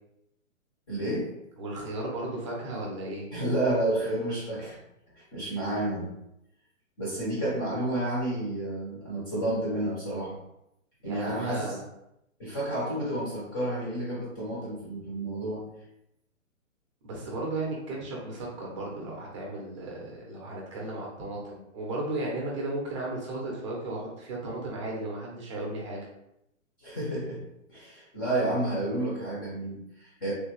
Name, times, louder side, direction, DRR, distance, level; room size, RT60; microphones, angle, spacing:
voice 1, 0.9-1.3 3.3-4.8 5.2-6.1 7.0-10.4 11.0-11.8 12.4-15.6 26.8-27.4 27.7-30.3, right 1 dB, 15° left, -7 dB, 0.6 m, -30 dB
voice 2, 1.6-3.3 11.0-11.8 17.0-26.1, right 2 dB, 25° right, -3 dB, 0.6 m, -35 dB
3.3 x 2.2 x 3.1 m, 0.82 s
hypercardioid pair, 155°, 39 cm